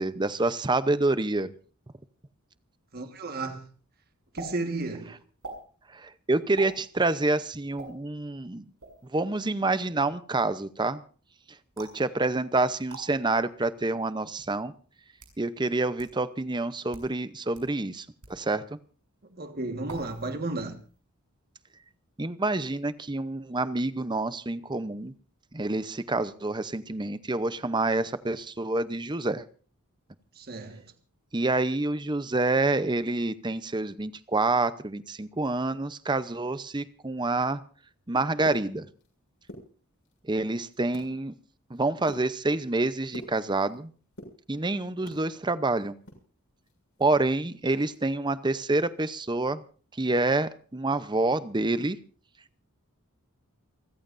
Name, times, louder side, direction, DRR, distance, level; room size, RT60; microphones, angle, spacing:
voice 1, 0.0-1.5 5.9-8.6 9.1-11.0 11.8-14.7 15.4-18.8 22.2-25.1 25.5-29.5 31.3-37.6 38.1-38.9 40.3-41.3 41.7-43.9 44.5-45.9 47.0-49.6 50.0-52.0, right 2 dB, 20° right, 0.7 m, -27 dB
voice 2, 2.9-3.7 4.3-5.1 19.4-20.8 30.4-30.8, right 2 dB, 45° right, 1.6 m, -33 dB
sound 1, 4.4-4.5 5.4-5.6 6.6-6.8 7.8-7.9 8.8-9.1 11.8-12.0 12.9-13.0 14.0-14.1 14.9-15.4 16.0-16.1 16.8-17.1 17.5-17.7 18.2-18.4 19.9-20.3 20.6-21.0, right 2 dB, 75° right, 6.6 m, -43 dB
sound 2, 38.2-39.1 39.4-40.2 40.6-41.1 41.5-43.8 44.1-45.3 45.6-47.2 47.4-47.5 47.9-48.1 48.5-48.7, equal, 55° left, 7.1 m, -46 dB
29.0 x 14.5 x 2.6 m
head